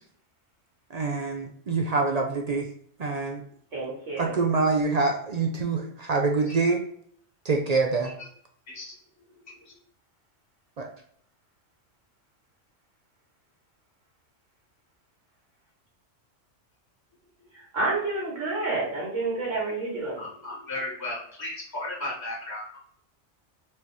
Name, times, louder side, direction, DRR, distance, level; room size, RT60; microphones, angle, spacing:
voice 1, 0.9-2.7 3.0-3.4 4.2-6.8 7.4-8.1 10.8-10.9, right 4 dB, 55° right, 2 dB, 0.4 m, -25 dB
voice 2, 3.7-4.3 17.5-20.2, right 2 dB, 90° right, -5 dB, 1.9 m, -29 dB
voice 3, 9.3-9.7 20.1-22.8, left 2 dB, 15° left, -4 dB, 1.1 m, -35 dB
4.5 x 2.9 x 3.3 m, 0.65 s
omnidirectional pair, 1.2 m